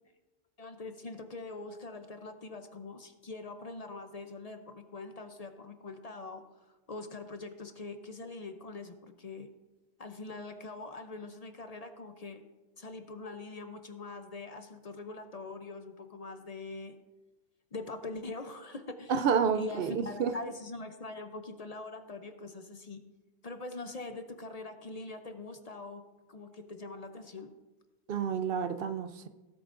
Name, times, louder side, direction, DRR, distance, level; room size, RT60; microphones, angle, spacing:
voice 1, 0.6-9.5 10.0-12.4 12.8-16.9 17.7-19.2 19.5-23.0 23.4-26.0 26.3-27.5, left 3 dB, 45° left, 7 dB, 0.7 m, -43 dB
voice 2, 19.1-20.3 28.1-29.3, right 6 dB, 65° right, 10 dB, 0.8 m, -29 dB
17.0 x 8.1 x 2.5 m, 1.1 s
omnidirectional pair, 1.0 m